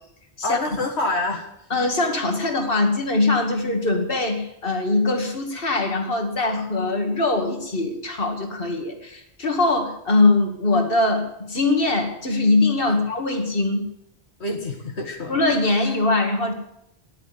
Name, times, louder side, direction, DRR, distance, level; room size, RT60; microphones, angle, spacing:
voice 1, 0.4-1.5 12.9-13.0 14.4-15.3, left 2 dB, 80° left, 2 dB, 2.0 m, -27 dB
voice 2, 1.7-13.9 14.5-14.6 15.3-16.5, left 2 dB, 55° left, 3 dB, 2.5 m, -22 dB
14.0 x 10.5 x 9.8 m, 0.80 s
omnidirectional pair, 1.1 m